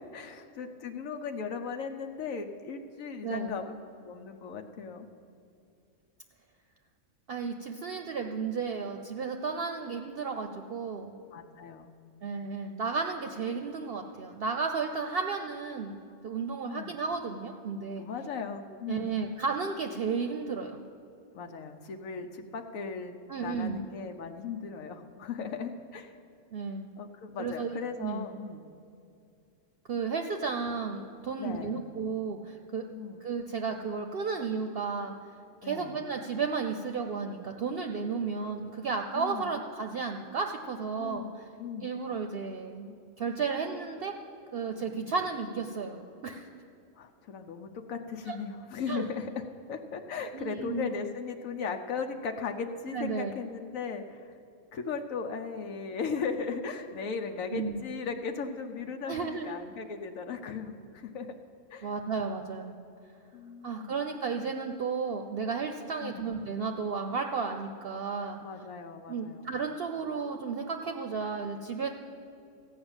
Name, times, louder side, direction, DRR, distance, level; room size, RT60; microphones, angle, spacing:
voice 1, 0.1-3.7 4.0-5.1 11.3-11.9 16.6-17.0 18.0-19.2 21.3-26.1 27.0-28.6 31.4-31.8 32.9-33.2 35.6-36.0 39.1-39.5 41.0-41.3 41.6-41.9 44.9-45.1 47.0-49.4 49.7-54.4 54.7-61.3 61.7-61.9 63.3-64.0 66.0-66.3 68.4-69.5, left 5 dB, 90° left, 4 dB, 1.2 m, -37 dB
voice 2, 3.2-3.6 7.3-11.1 12.2-18.1 18.9-20.8 23.3-23.9 26.5-26.9 27.4-28.3 29.9-32.8 33.2-35.1 35.6-41.5 41.8-44.1 44.5-46.5 48.3-48.4 48.9-49.0 50.3-50.9 52.9-53.3 57.5-57.8 59.1-59.5 61.8-62.8 63.6-68.4 69.1-71.9, right 5 dB, 55° right, 5 dB, 0.7 m, -33 dB
14.5 x 5.7 x 8.8 m, 2.6 s
omnidirectional pair, 1.4 m